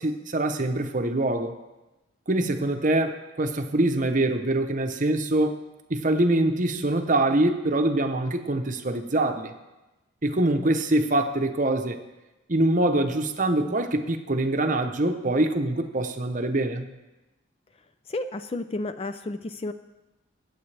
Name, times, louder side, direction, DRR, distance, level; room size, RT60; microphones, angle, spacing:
voice 1, 0.0-1.5 2.3-5.6 5.9-9.5 10.2-12.0 12.5-16.9, right 1 dB, 40° right, 6 dB, 0.8 m, -24 dB
voice 2, 18.1-19.7, left 2 dB, 30° left, 10 dB, 0.4 m, -32 dB
23.5 x 8.0 x 3.3 m, 1.1 s
head